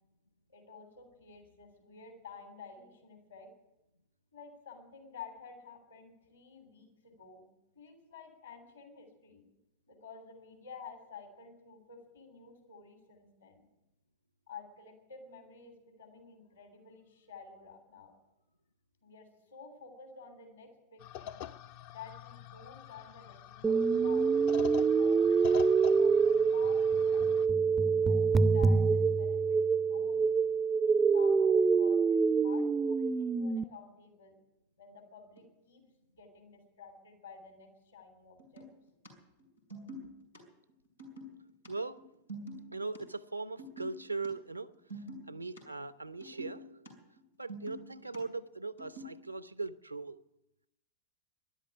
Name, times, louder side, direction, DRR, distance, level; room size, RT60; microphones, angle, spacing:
voice 1, 0.5-3.5 4.3-7.5 7.7-9.4 9.9-13.6 14.5-18.1 19.0-21.5 21.9-24.3 24.9-27.3 28.1-30.2 30.8-34.4 34.8-35.9 36.1-38.7, left 5 dB, 70° left, 3.1 m, -51 dB
sound 1, 21.0-27.5, left 11 dB, 50° left, 0.6 m, -45 dB
sound 2, 23.6-33.6, right 5 dB, 15° right, 0.4 m, -26 dB
sound 3, 35.4-35.5 38.4-39.1 39.4-40.4 40.7-41.7 42.0-43.0 43.4-44.3 44.6-45.6 45.9-46.9 47.2-48.2 48.8-49.2, equal, 90° left, 4.9 m, -46 dB
voice 2, 41.7-42.0 42.7-44.7 45.3-46.9 47.4-50.2, right 3 dB, 85° right, 0.6 m, -39 dB
13.0 x 11.5 x 8.4 m
figure-of-eight pair, 90°, 0 cm